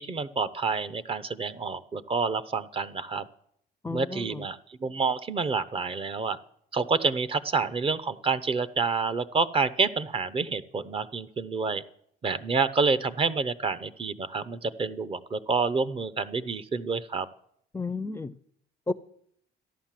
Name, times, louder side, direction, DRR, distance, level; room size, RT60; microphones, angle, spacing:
voice 1, 0.0-3.2 3.9-6.4 6.7-11.8 12.2-17.3, right 4 dB, 35° right, 0.8 m, -28 dB
voice 2, 3.8-4.5 17.7-18.3 18.9-19.0, left 3 dB, 15° left, 0.5 m, -32 dB
13.5 x 11.0 x 7.5 m
cardioid pair, 110°, 17 cm